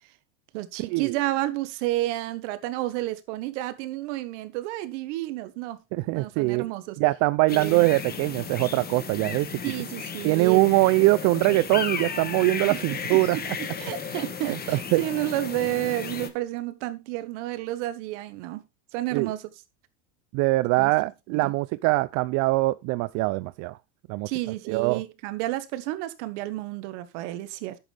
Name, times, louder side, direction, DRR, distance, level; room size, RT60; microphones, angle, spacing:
voice 1, 0.5-5.8 6.1-7.0 7.5-7.8 9.6-10.6 12.7-13.4 13.8-18.6 18.9-19.5 20.8-20.9 21.3-21.5 24.2-27.8, right 16 dB, 70° right, 1.5 m, -31 dB
voice 2, 5.9-6.6 7.0-9.6 10.2-13.4 14.5-15.0 19.1-19.3 20.3-23.8 24.1-24.3 24.7-25.0, right 21 dB, 50° right, 0.5 m, -23 dB
sound 1, 7.5-16.3, left 6 dB, 25° left, 1.7 m, -34 dB
10.5 x 8.3 x 3.4 m
supercardioid pair, 110°, 37 cm